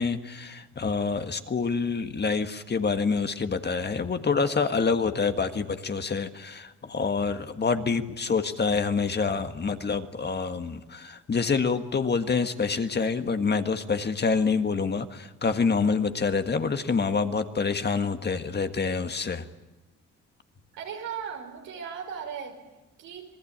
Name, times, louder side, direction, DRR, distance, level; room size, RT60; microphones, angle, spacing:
voice 1, 0.0-19.4, left 5 dB, 35° left, 8 dB, 1.7 m, -27 dB
voice 2, 20.7-22.5 23.0-23.3, right 7 dB, 90° right, 3 dB, 5.2 m, -37 dB
26.5 x 19.0 x 8.8 m, 1.0 s
cardioid pair, 90°, 30 cm